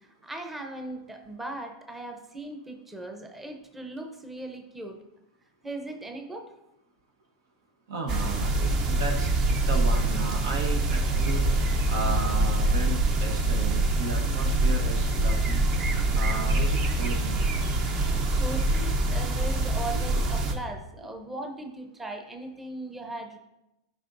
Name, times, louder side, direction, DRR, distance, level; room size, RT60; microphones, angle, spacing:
voice 1, 0.2-5.0 5.6-6.5 18.4-23.4, right 2 dB, 10° right, 4 dB, 0.8 m, -38 dB
voice 2, 7.9-9.3 9.7-11.4 11.9-15.6 16.1-17.4 18.8-18.9 20.2-20.3, right 3 dB, 75° right, 3 dB, 1.3 m, -34 dB
sound 1, 8.1-20.5, right 2 dB, 35° right, 0.9 m, -25 dB
12.0 x 5.2 x 2.6 m, 0.92 s
hypercardioid pair, 115°, 2 cm